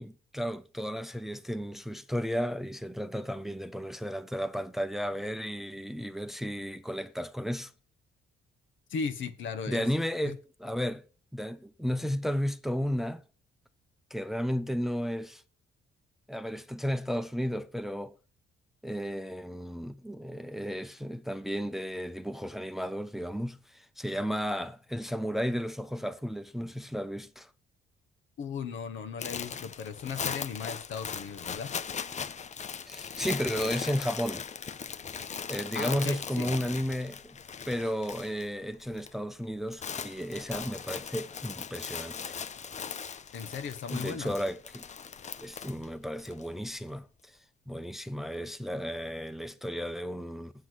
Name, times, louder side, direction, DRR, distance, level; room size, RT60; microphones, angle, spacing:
voice 1, 0.0-7.7 9.7-11.0 11.3-13.2 14.1-15.4 16.3-18.1 18.8-27.5 32.9-34.4 35.5-37.4 37.7-42.3 43.9-44.9 45.4-47.3 47.7-50.5, equal, ahead, 0.7 m, -33 dB
voice 2, 8.9-9.9 10.2-10.3 28.4-31.7 35.7-36.5 43.3-44.3, left 6 dB, 75° left, 1.5 m, -37 dB
sound 1, 29.2-38.5 38.7-39.1 39.4-46.4, left 6 dB, 35° left, 0.6 m, -39 dB
7.9 x 7.5 x 6.1 m
cardioid pair, 90°, 20 cm